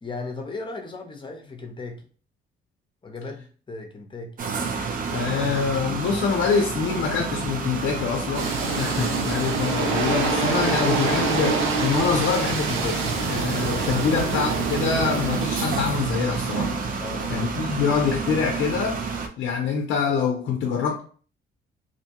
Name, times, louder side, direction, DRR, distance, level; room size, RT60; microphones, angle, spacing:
voice 1, 0.0-2.1 3.0-4.3 17.0-17.3, left 3 dB, 25° left, 0.7 m, -36 dB
sound 1, 4.4-19.3, right 5 dB, 45° right, 0.5 m, -29 dB
voice 2, 5.1-17.0 17.3-19.0 19.4-21.0, left 6 dB, 70° left, 0.5 m, -25 dB
sound 2, 8.3-18.2, right 4 dB, 85° right, 0.6 m, -27 dB
2.6 x 2.1 x 2.8 m
cardioid pair, 90°, 20 cm